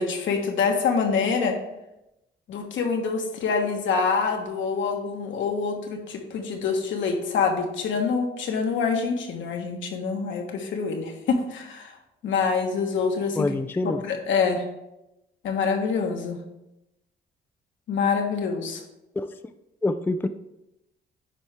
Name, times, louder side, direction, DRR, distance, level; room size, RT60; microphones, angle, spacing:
voice 1, 0.0-1.6 2.5-11.9 12.2-13.5 13.8-14.6 15.4-16.4 17.9-18.8, left 5 dB, 75° left, 3 dB, 1.3 m, -26 dB
voice 2, 13.4-14.0 19.2-19.3 19.8-20.3, left 2 dB, 10° left, 10 dB, 0.3 m, -26 dB
9.9 x 4.3 x 3.5 m, 0.89 s
cardioid pair, 90°, 20 cm